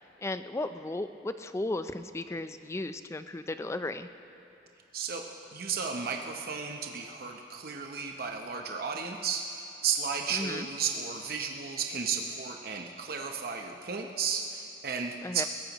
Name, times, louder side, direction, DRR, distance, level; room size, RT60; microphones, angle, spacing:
voice 1, 0.2-4.1 10.3-10.7 15.2-15.4, left 2 dB, 15° left, 10 dB, 0.4 m, -35 dB
voice 2, 5.5-15.5, right 6 dB, 55° right, 2 dB, 0.8 m, -34 dB
21.5 x 17.0 x 3.0 m, 2.8 s
head